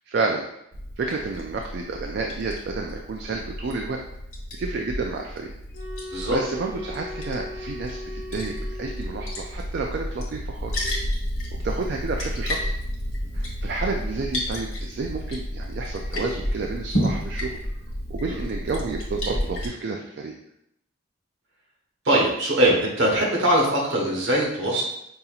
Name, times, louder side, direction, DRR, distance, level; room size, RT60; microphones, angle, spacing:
voice 1, 0.1-0.5 1.0-4.0 4.6-5.5 6.2-10.9 11.6-12.7 13.3-17.6 18.1-20.3, right 3 dB, 55° right, 1 dB, 0.3 m, -30 dB
Liquid, 0.7-19.7, equal, 85° left, 1.2 m, -31 dB
sound 1, 5.7-9.6, left 1 dB, 55° left, 1.1 m, -39 dB
voice 2, 22.0-24.8, right 1 dB, 70° right, -2 dB, 1.1 m, -21 dB
5.3 x 2.8 x 2.4 m, 0.78 s
head